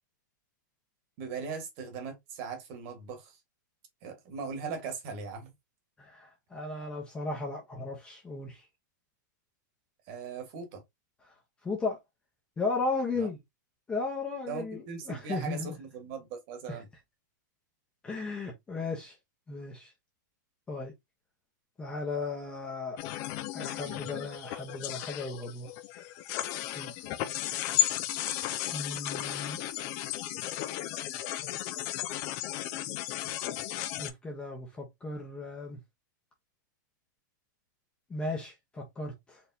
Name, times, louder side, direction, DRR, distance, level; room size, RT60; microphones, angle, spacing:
voice 1, 1.2-3.4 4.0-5.5 10.1-10.8 13.2-13.3 14.5-16.9 23.8-24.1, right 5 dB, 30° right, 1.4 m, -39 dB
voice 2, 6.0-8.6 11.6-12.0 12.6-13.4 13.9-15.8 16.7-16.8 18.0-19.2 19.5-19.9 20.7-20.9 21.8-23.0 23.5-25.7 26.7-26.9 28.7-29.6 31.9-32.2 34.0-35.8 38.1-39.4, left 3 dB, 10° left, 0.8 m, -35 dB
sound 1, 23.0-34.1, left 13 dB, 25° left, 0.4 m, -34 dB
4.3 x 3.2 x 2.7 m
supercardioid pair, 170°, 10 cm